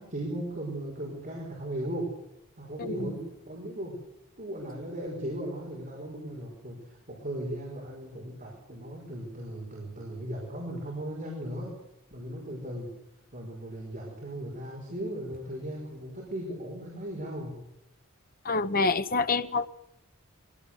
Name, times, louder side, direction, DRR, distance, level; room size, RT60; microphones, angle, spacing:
voice 1, 0.0-2.1 2.6-4.0 4.4-11.8 12.1-12.9 13.3-17.6, right 1 dB, 40° right, 5.5 m, -37 dB
voice 2, 2.8-3.1 18.4-19.7, left 3 dB, 45° left, 0.9 m, -27 dB
22.5 x 17.0 x 8.1 m
head